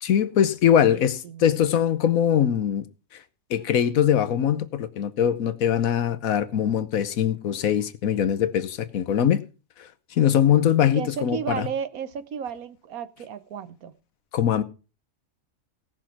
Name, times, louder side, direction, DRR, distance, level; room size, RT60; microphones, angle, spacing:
voice 1, 0.0-2.8 3.5-9.4 9.8-11.7 14.3-14.6, left 9 dB, 75° left, 1.3 m, -22 dB
voice 2, 0.9-1.6 10.9-13.9, right 7 dB, 80° right, 1.4 m, -33 dB
17.0 x 6.1 x 5.9 m
omnidirectional pair, 1.5 m